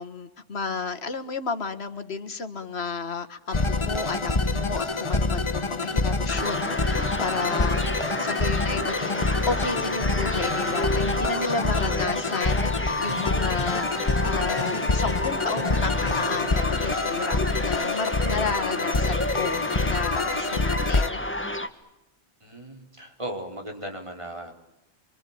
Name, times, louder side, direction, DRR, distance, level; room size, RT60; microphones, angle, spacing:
voice 1, 0.0-21.4, left 4 dB, 70° left, 9 dB, 1.9 m, -32 dB
sound 1, 3.5-21.1, left 3 dB, 30° left, 1.0 m, -26 dB
sound 2, 6.3-21.7, left 1 dB, 10° left, 1.5 m, -30 dB
voice 2, 22.4-24.5, right 1 dB, 25° right, 3 dB, 4.2 m, -37 dB
26.0 x 24.5 x 8.7 m, 0.88 s
omnidirectional pair, 1.1 m